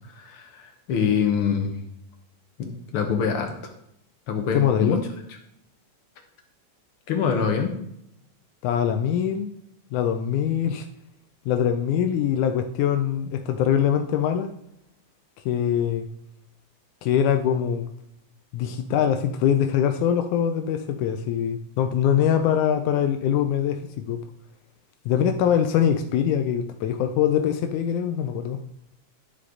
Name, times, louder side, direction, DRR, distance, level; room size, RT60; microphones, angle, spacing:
voice 1, 0.2-1.7 2.6-3.5 4.3-5.0 7.1-7.7, left 6 dB, 55° left, 4 dB, 1.7 m, -25 dB
voice 2, 4.5-5.0 8.6-9.5 9.9-10.9 11.5-14.5 15.5-16.1 17.0-17.9 18.5-24.2 25.1-28.6, left 9 dB, 85° left, 7 dB, 2.1 m, -23 dB
11.0 x 6.5 x 3.9 m, 0.77 s
omnidirectional pair, 3.5 m